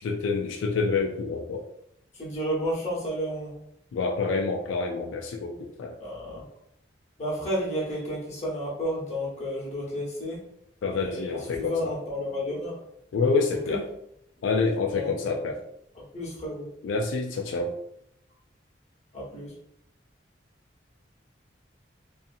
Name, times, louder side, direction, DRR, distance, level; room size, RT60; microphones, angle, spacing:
voice 1, 0.0-1.7 3.9-6.0 10.8-11.9 13.1-13.8 14.4-15.6 16.8-17.7, left 4 dB, 85° left, 2 dB, 0.3 m, -27 dB
voice 2, 2.1-3.5 6.0-6.4 7.2-10.4 10.9-12.8 13.7-13.8 14.9-15.5 16.1-16.7 19.1-19.5, equal, 35° left, -5 dB, 0.9 m, -32 dB
2.7 x 2.4 x 2.5 m, 0.76 s
head